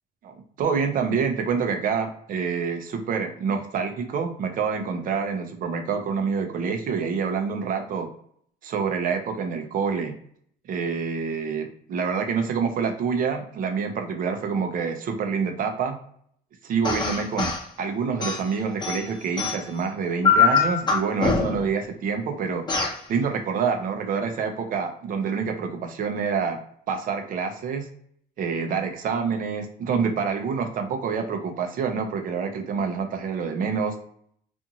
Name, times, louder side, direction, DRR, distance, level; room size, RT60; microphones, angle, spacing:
voice 1, 0.2-8.1 8.6-10.1 10.7-16.0 16.6-22.7 23.1-26.6 26.9-27.9 28.4-34.0, right 5 dB, 55° right, 5 dB, 0.6 m, -27 dB
sound 1, 16.8-17.6 18.2-19.8 20.2-21.7 22.7-23.0, left 5 dB, 25° left, 0.8 m, -23 dB
2.6 x 2.5 x 2.7 m, 0.64 s
cardioid pair, 110°, 17 cm